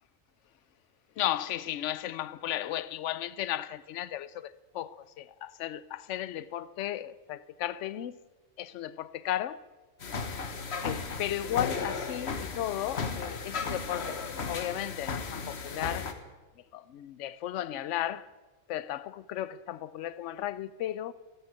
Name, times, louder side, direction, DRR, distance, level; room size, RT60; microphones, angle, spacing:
voice 1, 1.2-8.1 8.6-9.6 10.8-16.1 16.7-18.3 18.7-21.1, left 12 dB, 70° left, 0.9 m, -35 dB
sound 1, 10.0-16.1, left 4 dB, 55° left, 1.4 m, -35 dB
13.0 x 9.2 x 9.0 m
omnidirectional pair, 1.3 m